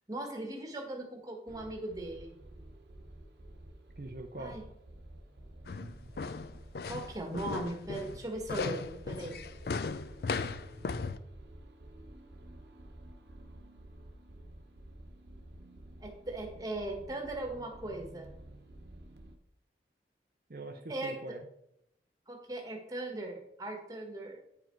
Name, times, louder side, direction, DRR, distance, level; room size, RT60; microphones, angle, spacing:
voice 1, 0.1-2.3 4.4-4.6 6.9-9.4 16.0-18.3 20.9-21.4 22.3-24.4, right 2 dB, 20° right, 2 dB, 1.4 m, -39 dB
sound 1, 1.5-19.4, right 1 dB, 75° right, 1.1 m, -51 dB
voice 2, 4.0-4.6 5.7-6.1 20.5-21.5, right 2 dB, 55° right, 3 dB, 0.6 m, -44 dB
sound 2, 5.7-11.2, left 4 dB, 65° left, 0.4 m, -37 dB
9.2 x 4.9 x 4.6 m, 0.80 s
head